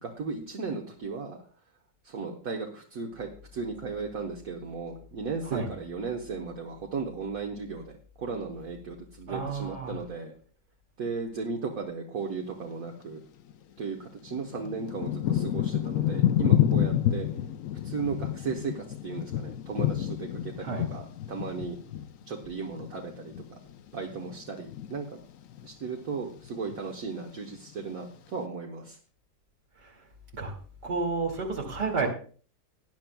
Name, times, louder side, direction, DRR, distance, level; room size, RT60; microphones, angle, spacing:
voice 1, 0.0-1.4 2.0-10.3 11.0-13.2 13.8-17.3 17.8-21.8 22.3-23.6 23.9-25.0 25.6-29.0, right 4 dB, 60° right, 0 dB, 1.6 m, -36 dB
voice 2, 9.3-10.0 20.6-20.9 29.8-29.9 30.4-30.5 30.8-32.1, right 4 dB, 75° right, 0 dB, 3.0 m, -31 dB
Thunder / Rain, 13.5-13.6 14.3-23.8 24.1-25.0 25.5-25.9 26.1-27.0 27.6-27.7, left 11 dB, 60° left, 0.9 m, -29 dB
18.5 x 10.5 x 2.3 m, 0.42 s
omnidirectional pair, 1.8 m